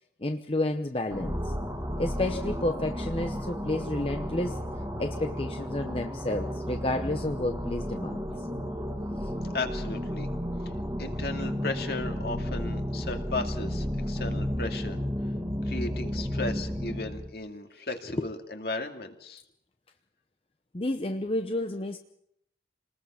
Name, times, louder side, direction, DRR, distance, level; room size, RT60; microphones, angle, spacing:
voice 1, 0.2-1.5 2.0-4.6 5.0-8.2 18.2-18.3 20.7-22.0, left 1 dB, 30° left, 0.8 m, -30 dB
sound 1, 1.1-17.3, equal, 15° right, 1.9 m, -33 dB
voice 2, 9.5-10.3 11.0-15.0 15.6-19.4, left 2 dB, 60° left, 2.4 m, -35 dB
29.0 x 20.0 x 5.8 m
head